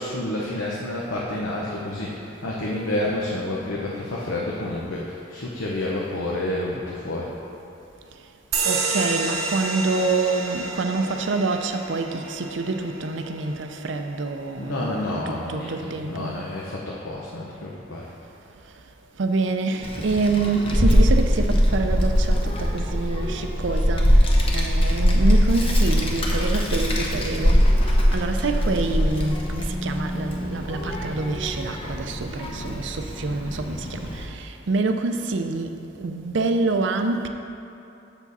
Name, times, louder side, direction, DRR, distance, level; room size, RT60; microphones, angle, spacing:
voice 1, 0.0-7.3 14.6-18.1, left 1 dB, 80° left, -4 dB, 0.9 m, -29 dB
sound 1, 8.5-15.6, right 3 dB, 80° right, 1.0 m, -30 dB
voice 2, 8.6-16.4 19.2-37.3, right 3 dB, 65° right, 6 dB, 0.5 m, -27 dB
Child speech kid speaking, 19.8-34.3, equal, 30° left, 0.8 m, -22 dB
7.3 x 7.0 x 4.1 m, 2.9 s
head